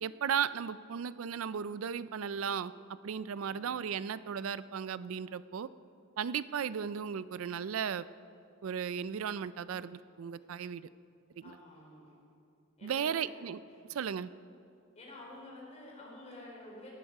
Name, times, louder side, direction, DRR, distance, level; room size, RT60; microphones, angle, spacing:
voice 1, 0.0-5.7 6.2-8.1 8.6-10.9 11.4-11.6 12.8-13.6 13.9-14.3, right 7 dB, 85° right, 16 dB, 0.4 m, -35 dB
voice 2, 3.3-3.7 11.4-12.0 12.8-13.2 13.7-14.0 14.9-16.9, left 1 dB, 35° left, -3 dB, 4.4 m, -50 dB
17.5 x 12.5 x 4.8 m, 2.5 s
head